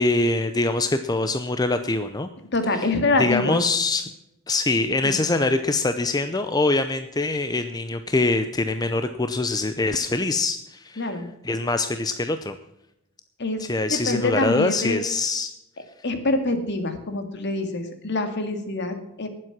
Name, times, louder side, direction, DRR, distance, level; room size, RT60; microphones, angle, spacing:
voice 1, 0.0-2.3 2.7-2.9 3.2-4.0 4.5-12.5 13.6-15.5, left 2 dB, 20° left, 9 dB, 0.6 m, -24 dB
voice 2, 2.5-3.6 5.0-5.1 11.0-11.3 13.4-13.6 13.9-15.0 16.0-19.3, left 2 dB, 55° left, 7 dB, 2.1 m, -25 dB
19.0 x 7.7 x 6.0 m, 0.85 s
head